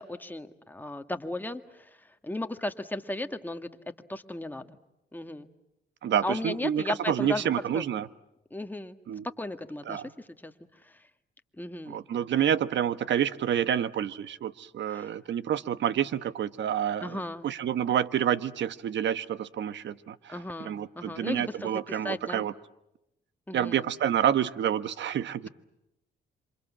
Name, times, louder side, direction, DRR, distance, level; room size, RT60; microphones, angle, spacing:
voice 1, 0.0-3.7 4.1-4.8 5.1-5.5 6.2-7.5 7.7-7.8 8.5-9.0 9.4-10.5 10.8-11.0 11.6-12.0 14.9-15.1 17.0-17.5 20.3-22.5 23.5-23.9, left 1 dB, 10° left, 7 dB, 1.8 m, -36 dB
voice 2, 6.0-8.1 9.1-9.2 9.9-10.1 11.9-22.5 23.5-25.5, right 9 dB, 65° right, 15 dB, 1.2 m, -28 dB
27.5 x 26.0 x 7.4 m, 0.89 s
cardioid pair, 90°, 20 cm